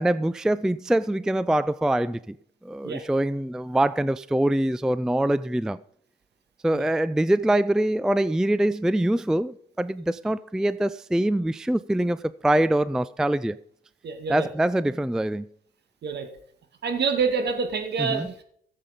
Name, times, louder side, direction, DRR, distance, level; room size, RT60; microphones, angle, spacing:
voice 1, 0.0-2.4 2.6-5.8 6.6-13.6 14.3-15.5 18.0-18.3, right 1 dB, 5° right, 0.3 m, -24 dB
voice 2, 14.0-14.5 16.0-16.3 16.8-18.4, right 5 dB, 60° right, 2.0 m, -27 dB
15.0 x 7.5 x 5.2 m
cardioid pair, 90°, 20 cm